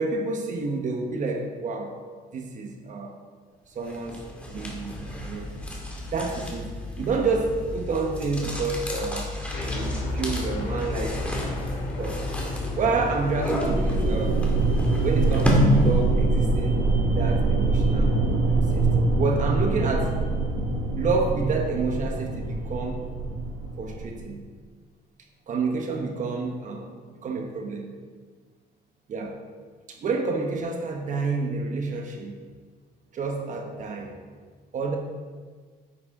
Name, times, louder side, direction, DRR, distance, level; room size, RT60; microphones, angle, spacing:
voice 1, 0.0-1.9 2.3-3.2 3.7-5.5 6.1-9.3 9.7-11.7 12.0-14.4 14.8-18.2 18.5-20.2 21.0-23.0 23.8-24.4 25.5-27.9 29.1-29.4 29.9-32.4 33.1-34.2 34.7-35.0, right 4 dB, 50° right, 2 dB, 1.2 m, -29 dB
sound 1, 3.8-16.2, left 1 dB, 5° left, 2.0 m, -29 dB
sound 2, 9.5-15.8, left 1 dB, 80° left, 2.2 m, -34 dB
sound 3, 13.6-24.2, right 3 dB, 75° right, 1.9 m, -24 dB
9.8 x 8.2 x 3.7 m, 1.5 s
cardioid pair, 110°, 17 cm